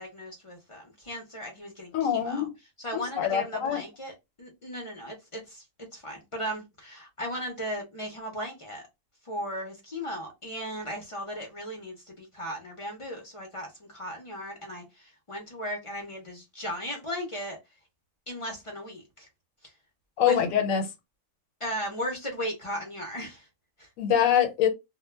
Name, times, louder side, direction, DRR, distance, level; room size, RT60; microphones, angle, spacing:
voice 1, 0.0-2.5 2.8-4.1 4.4-5.6 5.9-8.8 9.2-17.6 18.3-19.3 19.6-19.7 20.2-20.4 21.6-23.5 23.8-23.9, equal, 40° left, 0.5 m, -36 dB
voice 2, 1.9-2.5 2.9-3.8 20.2-20.9 24.0-24.7, left 9 dB, 90° left, 1.0 m, -24 dB
2.1 x 2.1 x 3.2 m
omnidirectional pair, 1.4 m